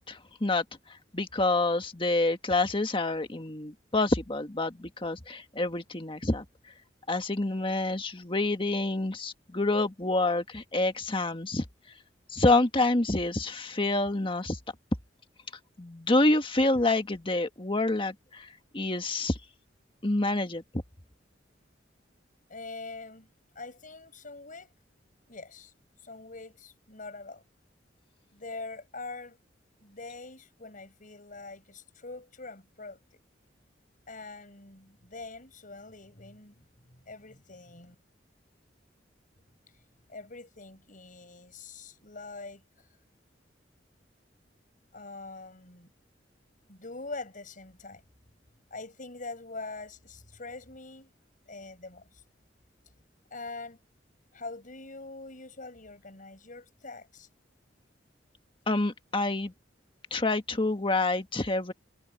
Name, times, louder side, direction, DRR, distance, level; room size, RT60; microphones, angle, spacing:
voice 1, 0.1-0.6 1.1-6.4 7.1-11.6 12.3-14.6 15.8-18.5 18.7-19.4 20.0-20.6 58.7-59.5 60.1-61.7, left 2 dB, 30° left, 1.6 m, -27 dB
voice 2, 22.5-23.3 23.5-24.7 25.3-25.7 26.0-27.4 28.3-29.4 29.8-33.0 34.1-36.6 36.9-38.0 40.1-42.6 44.9-45.9 46.7-48.0 48.7-51.1 51.5-52.2 53.3-53.8 54.3-57.3, left 3 dB, 45° left, 6.1 m, -43 dB
head